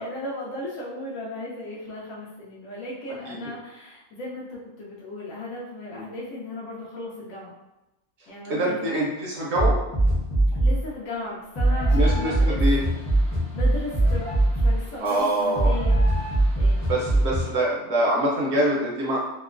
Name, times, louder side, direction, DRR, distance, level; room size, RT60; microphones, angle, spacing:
voice 1, 0.0-7.6 8.3-8.9 10.6-12.6 13.2-16.2 16.5-17.0, left 2 dB, 75° left, -5 dB, 1.0 m, -36 dB
voice 2, 8.5-9.8 11.9-12.8 15.0-15.7 16.9-19.2, right 1 dB, 60° right, -4 dB, 0.8 m, -24 dB
sound 1, 9.6-10.9 11.6-17.5, right 1 dB, 25° left, 0.6 m, -22 dB
2.9 x 2.0 x 2.4 m, 0.97 s
omnidirectional pair, 1.5 m